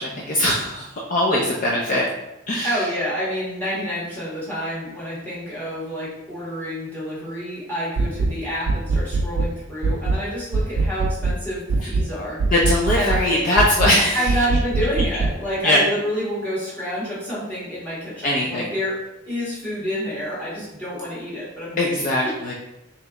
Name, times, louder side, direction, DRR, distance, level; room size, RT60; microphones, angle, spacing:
voice 1, 0.0-2.0 2.5-2.8 12.5-14.4 15.6-15.8 18.2-18.7 21.8-22.5, left 1 dB, 45° left, -4 dB, 0.5 m, -21 dB
voice 2, 2.6-12.4 12.9-13.4 14.1-18.9 19.3-22.4, equal, 10° left, -9 dB, 1.5 m, -28 dB
sound 1, 8.0-8.4 8.7-9.5 9.8-10.2 10.5-11.4 11.7-12.1 12.4-13.3 13.6-14.0 14.3-15.4, right 3 dB, 90° right, 0.3 m, -22 dB
3.2 x 2.9 x 3.6 m, 0.92 s
head